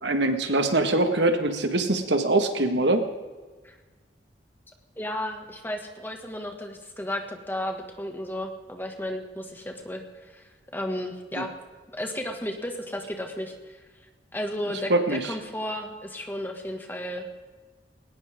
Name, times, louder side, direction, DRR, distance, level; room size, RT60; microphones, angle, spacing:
voice 1, 0.0-3.0 11.4-11.5 14.9-15.3, right 2 dB, 75° right, 6 dB, 1.7 m, -23 dB
voice 2, 5.0-11.5 11.9-13.8 14.3-17.3, left 1 dB, 10° left, 3 dB, 2.0 m, -33 dB
20.5 x 19.0 x 3.7 m, 1.3 s
head